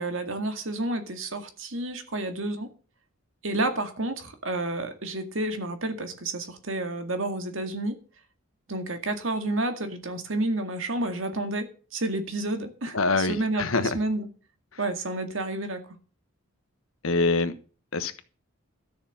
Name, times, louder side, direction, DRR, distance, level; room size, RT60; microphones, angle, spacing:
voice 1, 0.0-2.7 3.4-8.0 8.7-14.3 14.8-16.0, right 2 dB, 65° right, 2.0 m, -30 dB
voice 2, 12.9-14.0 17.0-17.5 17.9-18.2, left 3 dB, 75° left, 1.3 m, -25 dB
13.0 x 6.9 x 7.3 m
head